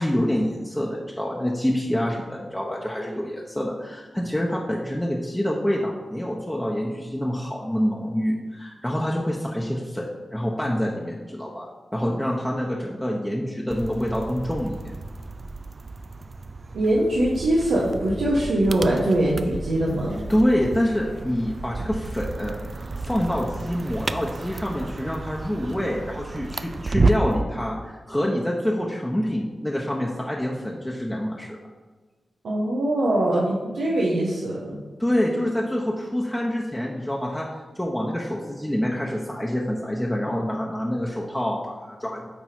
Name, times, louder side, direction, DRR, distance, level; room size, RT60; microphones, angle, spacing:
voice 1, 0.0-14.9 20.3-22.6 23.0-31.6 35.0-37.5 37.7-42.3, equal, 10° left, -2 dB, 0.9 m, -26 dB
sound 1, 13.7-27.4, right 3 dB, 50° right, 0.4 m, -31 dB
voice 2, 16.7-20.2 32.4-34.8, right 1 dB, 85° right, -5 dB, 1.0 m, -22 dB
8.9 x 3.4 x 4.4 m, 1.4 s
cardioid pair, 45°, 0 cm